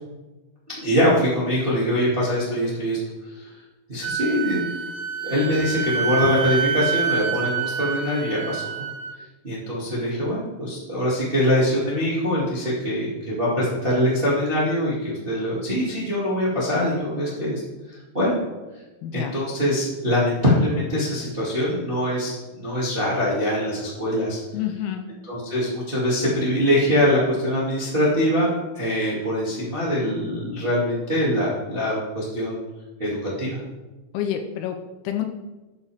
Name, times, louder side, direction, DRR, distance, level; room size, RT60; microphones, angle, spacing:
voice 1, 0.7-3.0 3.3-3.5 3.9-4.6 5.2-8.9 9.4-17.6 17.9-18.4 19.1-24.4 25.3-32.6 33.0-33.6, equal, 15° right, -7 dB, 2.2 m, -23 dB
Wind instrument woodwind instrument, 4.0-9.2, right 7 dB, 85° right, 1.5 m, -27 dB
voice 2, 19.0-19.3 24.5-25.1 34.1-34.8 35.0-35.3, left 10 dB, 90° left, 5 dB, 2.8 m, -28 dB
13.5 x 8.6 x 3.6 m, 1.1 s
omnidirectional pair, 4.4 m